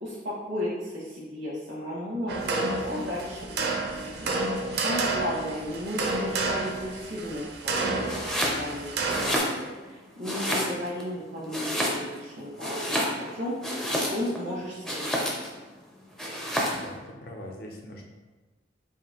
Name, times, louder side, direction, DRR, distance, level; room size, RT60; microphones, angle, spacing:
voice 1, 0.0-9.3 9.6-15.2, left 1 dB, 85° right, -8 dB, 1.0 m, -35 dB
sound 1, 2.3-9.4, right 3 dB, 60° right, 0.5 m, -30 dB
Domestic sounds home sounds, 8.0-8.6 9.0-9.9 10.2-11.0 11.5-12.3 12.6-14.4 14.8-15.6 16.2-16.9, equal, 5° left, 0.5 m, -29 dB
voice 2, 16.7-18.1, left 1 dB, 55° left, 0 dB, 0.6 m, -42 dB
4.8 x 2.6 x 2.8 m, 1.2 s
head